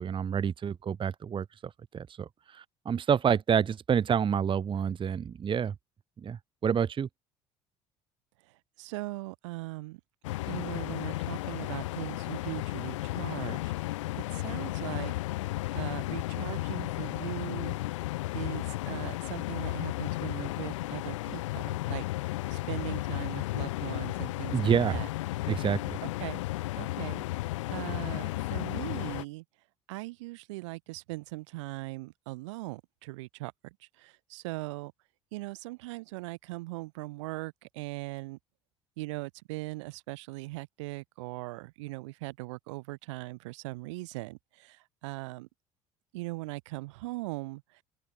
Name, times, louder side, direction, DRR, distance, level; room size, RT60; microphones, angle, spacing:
voice 1, 0.0-5.7 6.2-7.1 24.5-25.0 25.5-26.0, right 7 dB, 30° right, 0.8 m, -28 dB
voice 2, 8.8-10.0 10.5-15.1 15.7-17.8 18.3-21.4 21.9-22.0 22.5-25.1 26.2-26.4 26.8-27.2 27.7-29.4 29.9-33.5 34.0-34.9 35.3-38.4 39.0-45.5 46.1-47.6, right 22 dB, 75° right, 1.3 m, -39 dB
sound 1, 10.2-29.2, left 18 dB, 80° left, 0.4 m, -34 dB
open air
hypercardioid pair, 60°, 16 cm